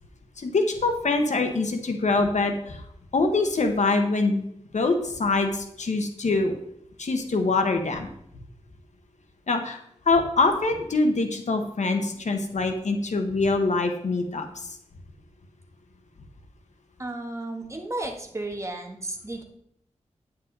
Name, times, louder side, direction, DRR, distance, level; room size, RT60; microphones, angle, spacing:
voice 1, 0.4-2.8 3.1-4.4 4.7-6.5 7.0-8.1 9.5-14.7, left 3 dB, 80° left, 5 dB, 1.3 m, -24 dB
voice 2, 17.0-19.4, right 2 dB, 25° right, 2 dB, 1.6 m, -33 dB
9.5 x 8.6 x 4.0 m, 0.72 s
wide cardioid pair, 105°, 12 cm